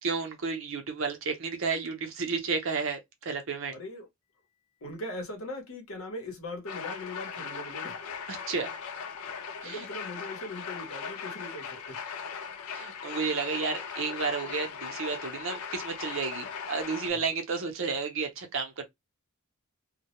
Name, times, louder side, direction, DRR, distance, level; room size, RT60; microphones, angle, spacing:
voice 1, 0.0-3.7 8.3-8.7 9.6-9.9 12.7-18.8, right 4 dB, 60° right, 0.6 m, -32 dB
voice 2, 3.7-4.1 4.8-8.0 9.3-12.0, left 1 dB, 60° left, 0.8 m, -40 dB
sound 1, 6.7-17.1, left 6 dB, 85° left, 0.4 m, -39 dB
2.2 x 2.0 x 2.9 m
head